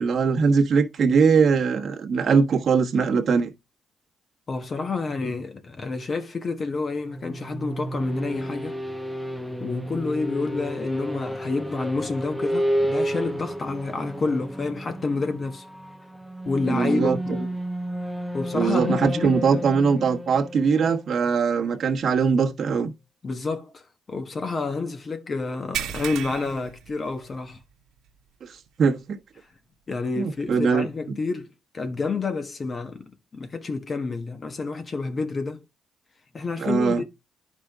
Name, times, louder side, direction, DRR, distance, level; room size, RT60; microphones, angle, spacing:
voice 1, 0.0-3.5 16.7-17.4 18.5-22.9 28.4-29.2 30.2-30.9 36.6-37.0, right 5 dB, 50° right, 1.3 m, -21 dB
voice 2, 4.5-8.8 9.6-15.6 16.4-17.5 18.3-19.6 23.2-27.6 29.9-35.6 36.3-37.0, left 3 dB, 35° left, 1.3 m, -29 dB
sound 1, 7.0-21.7, equal, ahead, 0.9 m, -31 dB
sound 2, 25.7-27.6 28.0-28.2 28.7-28.8 30.4-30.5, right 10 dB, 85° right, 1.1 m, -34 dB
10.5 x 5.1 x 3.6 m
cardioid pair, 90°, 0 cm